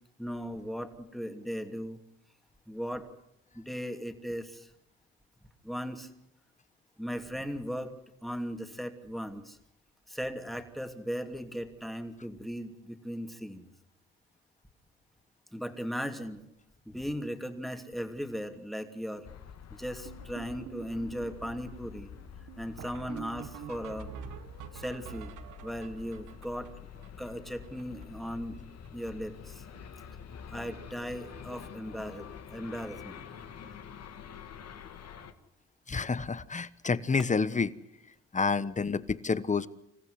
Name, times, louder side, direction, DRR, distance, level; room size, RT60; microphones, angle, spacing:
voice 1, 0.2-2.0 2.7-3.0 3.5-4.7 5.6-6.1 7.0-7.9 8.2-9.6 10.1-13.7 15.5-16.4 16.9-19.3 19.7-22.2 22.6-24.1 24.7-25.3 25.6-26.7 27.2-29.6 30.5-33.3, equal, ahead, 6 dB, 2.8 m, -37 dB
sound 1, 19.2-35.3, left 7 dB, 55° left, 2.0 m, -47 dB
sound 2, 20.0-28.3 28.5-28.6 28.8-29.1 29.4-29.9 30.2-30.5 31.3-31.4 31.8-31.9 32.2-32.3 34.6-34.7 37.0-37.1, right 11 dB, 80° right, 1.6 m, -47 dB
voice 2, 35.9-37.7 38.3-39.7, left 4 dB, 25° left, 16 dB, 1.1 m, -29 dB
27.0 x 15.0 x 9.7 m, 0.82 s
cardioid pair, 90°, 30 cm